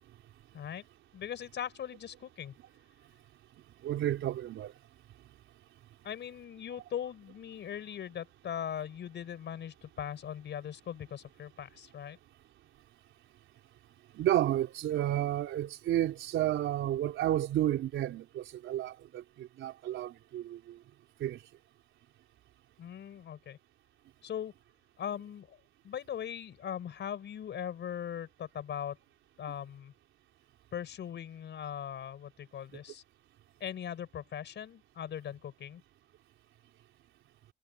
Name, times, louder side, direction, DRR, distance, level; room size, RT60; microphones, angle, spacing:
voice 1, 1.1-2.5 6.0-12.2 22.8-23.6 24.2-24.5 25.0-25.6 25.8-29.0 29.4-29.9 30.7-33.0 33.6-35.8, left 9 dB, 65° left, 4.7 m, -40 dB
voice 2, 3.8-4.7 14.1-20.8 21.2-21.4, right 12 dB, 80° right, 4.3 m, -31 dB
cardioid pair, 90°, 20 cm